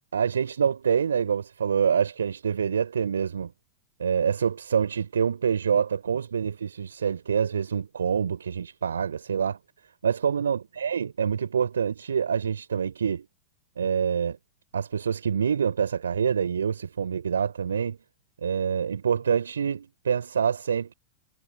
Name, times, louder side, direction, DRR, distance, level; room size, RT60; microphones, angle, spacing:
voice 1, 0.1-3.5 4.0-9.6 10.0-13.3 13.8-14.4 14.7-18.0 18.4-20.9, right 7 dB, 75° right, 5.9 m, -26 dB
figure-of-eight pair, 90°, 0 cm